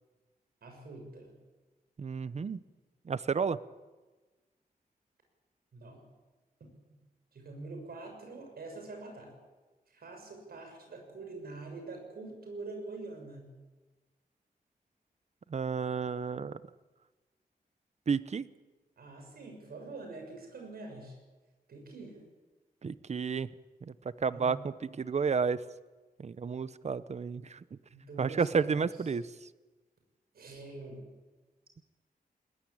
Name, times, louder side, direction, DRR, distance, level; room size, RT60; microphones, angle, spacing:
voice 1, 0.6-1.3 5.7-6.0 7.3-9.3 9.9-13.5 19.0-21.2 21.7-22.2 24.3-24.6 26.4-26.6 27.9-28.8 30.3-31.1, right 3 dB, 80° right, 3 dB, 6.7 m, -45 dB
voice 2, 2.0-2.6 3.0-3.6 15.5-16.5 18.1-18.5 22.8-23.5 23.8-23.9 24.2-25.6 26.2-27.8 28.2-29.3, right 5 dB, 45° right, 16 dB, 0.8 m, -31 dB
20.5 x 20.0 x 8.7 m, 1.2 s
wide cardioid pair, 125°, 16 cm